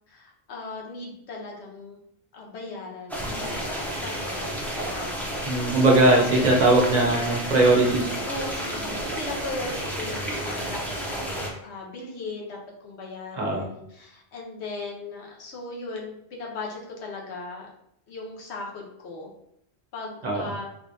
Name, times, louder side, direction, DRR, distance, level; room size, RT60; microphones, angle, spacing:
voice 1, 0.1-2.0 2.3-5.2 5.6-5.8 6.3-6.7 8.3-17.7 18.1-19.3 19.9-20.7, left 3 dB, 85° left, -1 dB, 1.1 m, -38 dB
sound 1, 3.1-11.5, equal, ahead, 0.4 m, -31 dB
voice 2, 5.4-8.2 13.4-13.6 20.2-20.5, right 2 dB, 45° right, -1 dB, 0.7 m, -20 dB
3.4 x 3.1 x 2.6 m, 0.75 s
omnidirectional pair, 1.1 m